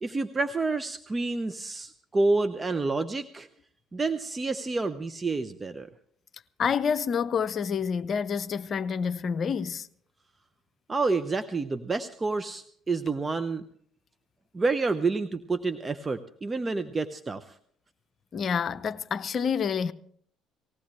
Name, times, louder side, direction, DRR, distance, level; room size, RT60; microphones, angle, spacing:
voice 1, 0.0-3.5 3.9-5.9 10.9-13.6 14.5-17.5, right 3 dB, 25° right, 0.8 m, -29 dB
voice 2, 6.6-9.9 18.3-19.9, left 6 dB, 50° left, 0.7 m, -28 dB
20.0 x 17.0 x 3.3 m
hypercardioid pair, 55°, 0 cm